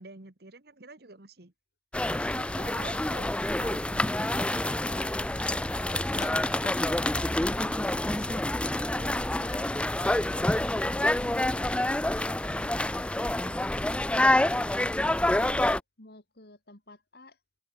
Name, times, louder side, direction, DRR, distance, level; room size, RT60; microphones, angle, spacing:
voice 1, 0.0-1.5 2.1-3.3 3.6-5.8, right 2 dB, 60° right, 1.7 m, -48 dB
sound 1, 1.9-15.8, left 1 dB, 5° left, 0.4 m, -27 dB
sound 2, 3.0-10.9, left 5 dB, 45° left, 1.6 m, -52 dB
voice 2, 6.9-17.4, left 2 dB, 60° left, 3.5 m, -53 dB
head